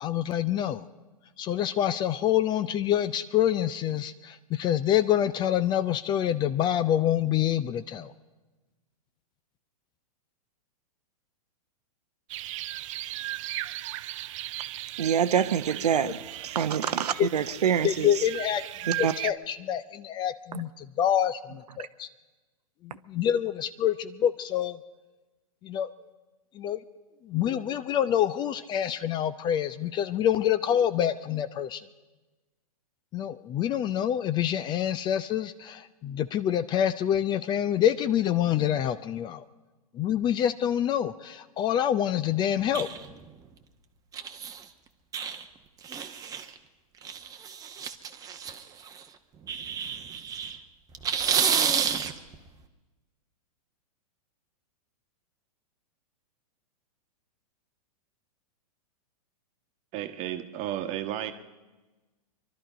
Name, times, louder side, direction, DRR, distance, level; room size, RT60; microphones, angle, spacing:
voice 1, 0.0-0.9 1.4-8.1 17.2-17.3 17.8-18.6 19.0-22.1 22.8-24.8 25.6-25.9 26.6-26.8 27.3-31.8 33.1-39.4 39.9-42.9, left 10 dB, 20° left, 15 dB, 0.4 m, -26 dB
sound 1, 12.3-19.3, right 15 dB, 55° right, 0.5 m, -37 dB
voice 2, 15.0-18.2 18.9-19.1 20.5-20.6, right 8 dB, 90° right, 11 dB, 0.8 m, -26 dB
sound 2, 42.7-43.2 44.1-44.6 45.1-45.4 45.8-46.6 47.0-49.0 49.5-50.6 50.9-52.3, right 7 dB, 20° right, 0.9 m, -30 dB
voice 3, 59.9-61.3, right 12 dB, 35° right, 8 dB, 1.2 m, -33 dB
23.0 x 12.0 x 5.1 m, 1.2 s
hypercardioid pair, 130°, 20 cm